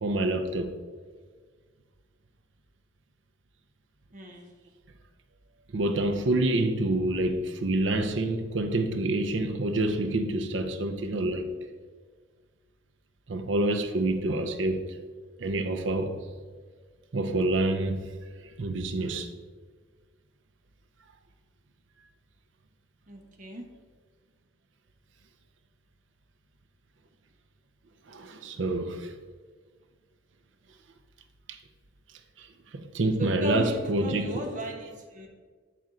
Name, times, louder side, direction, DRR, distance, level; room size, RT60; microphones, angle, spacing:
voice 1, 0.0-0.7 5.7-11.4 13.3-14.8 15.4-16.2 17.1-18.1 18.6-19.3 28.1-29.1 31.5-31.6 32.4-32.5 32.7-34.3, right 2 dB, 75° right, 0.6 m, -27 dB
voice 2, 4.1-4.5 23.1-23.6 33.2-35.3, equal, 40° right, 1.0 m, -36 dB
7.4 x 4.3 x 3.8 m
head